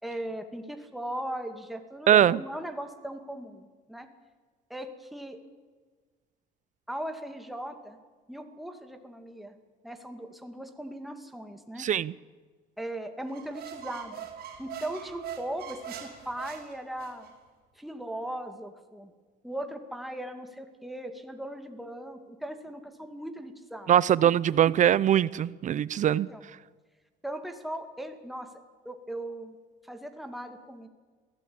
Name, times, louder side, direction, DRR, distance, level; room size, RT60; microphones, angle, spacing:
voice 1, 0.0-4.1 4.7-5.4 6.9-8.0 8.3-9.6 9.8-11.9 12.8-14.3 14.6-17.3 17.8-19.1 19.4-23.9 26.3-26.4 27.2-28.5 28.8-29.5 29.8-30.9, right 1 dB, ahead, 2.3 m, -38 dB
voice 2, 2.1-2.4 11.8-12.1 23.9-26.3, right 10 dB, 50° right, 0.5 m, -22 dB
sound 1, 13.3-17.3, right 8 dB, 65° right, 5.1 m, -42 dB
22.5 x 16.0 x 8.7 m
cardioid pair, 110°, 17 cm